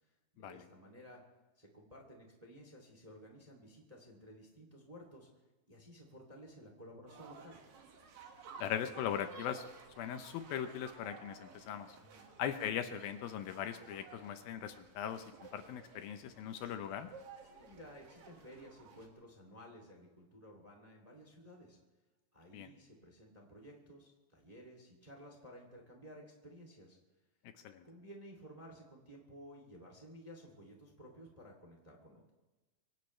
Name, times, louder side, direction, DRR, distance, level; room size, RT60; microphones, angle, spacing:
voice 1, 0.4-1.2 1.6-5.3 5.7-7.6 12.0-12.3 17.4-21.8 22.3-27.0 27.8-32.3, equal, 15° right, 1 dB, 1.8 m, -55 dB
sound 1, 7.1-19.1, right 5 dB, 65° right, 3.4 m, -56 dB
voice 2, 8.6-9.6 10.0-11.9 12.4-17.1 22.5-22.7 27.6-27.8, left 9 dB, 75° left, 8 dB, 2.5 m, -39 dB
25.0 x 17.5 x 3.2 m, 1.2 s
omnidirectional pair, 4.4 m